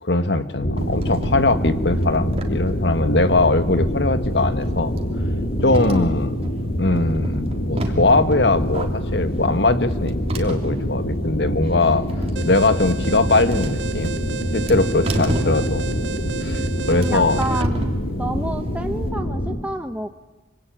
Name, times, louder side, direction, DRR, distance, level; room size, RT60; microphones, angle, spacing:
voice 1, 0.0-5.0 5.6-6.3 6.8-12.0 12.5-14.2 14.5-15.9 16.4-17.4, left 2 dB, 65° left, 11 dB, 1.7 m, -20 dB
sound 1, 0.6-19.6, equal, 85° left, 3.2 m, -25 dB
sound 2, 0.8-19.1, equal, 35° right, 3.2 m, -31 dB
Alarm, 12.4-17.6, right 7 dB, 90° right, 0.8 m, -33 dB
voice 2, 16.9-17.8 18.2-20.1, right 1 dB, 10° right, 6 dB, 0.9 m, -29 dB
25.0 x 25.0 x 9.2 m, 1.2 s
head